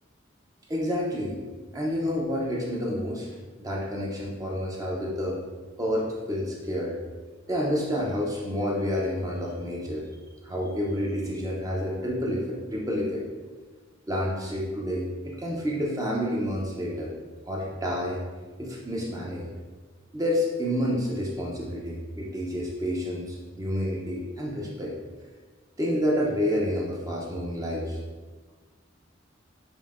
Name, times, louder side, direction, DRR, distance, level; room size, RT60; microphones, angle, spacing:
voice 1, 0.7-1.4 1.7-3.3 3.6-5.4 5.8-7.0 7.5-10.0 10.4-13.2 14.1-17.1 17.4-18.2 18.6-19.5 20.1-24.9 25.8-28.0, equal, 20° right, -3 dB, 0.5 m, -29 dB
5.2 x 2.5 x 2.4 m, 1.4 s
head